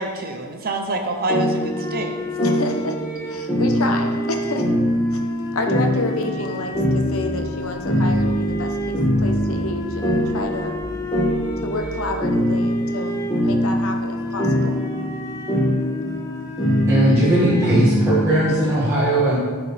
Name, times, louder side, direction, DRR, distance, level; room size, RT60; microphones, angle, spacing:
voice 1, 0.0-2.2, right 2 dB, 45° right, 4 dB, 0.8 m, -26 dB
sound 1, 1.3-18.7, equal, 15° left, 1.3 m, -23 dB
voice 2, 2.4-3.0 3.3-4.7 5.1-5.2 5.5-10.8 11.6-14.8, left 2 dB, 75° left, 4 dB, 1.0 m, -29 dB
sound 2, 6.7-12.2, equal, 75° right, 1.1 m, -37 dB
voice 3, 16.9-19.4, right 1 dB, 15° right, -11 dB, 1.9 m, -18 dB
14.0 x 4.8 x 3.4 m, 1.4 s
head